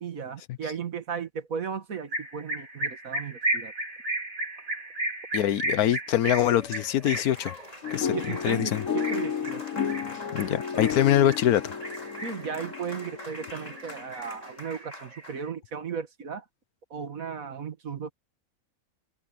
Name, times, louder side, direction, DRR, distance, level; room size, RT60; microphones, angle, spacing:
voice 1, 0.0-3.7 8.1-9.6 12.2-16.4 16.9-18.1, right 6 dB, 65° right, 2.0 m, -35 dB
sound 1, 2.1-11.5 11.8-12.5 12.9-13.8 14.1-15.5, right 2 dB, 50° right, 3.6 m, -34 dB
voice 2, 5.3-7.5 7.9-8.1 8.4-8.8 10.3-11.8, left 11 dB, 80° left, 1.2 m, -24 dB
Applause, 6.3-15.5, left 1 dB, 25° left, 4.8 m, -44 dB
sound 2, 7.8-14.0, left 8 dB, 60° left, 1.5 m, -33 dB
omnidirectional pair, 1.6 m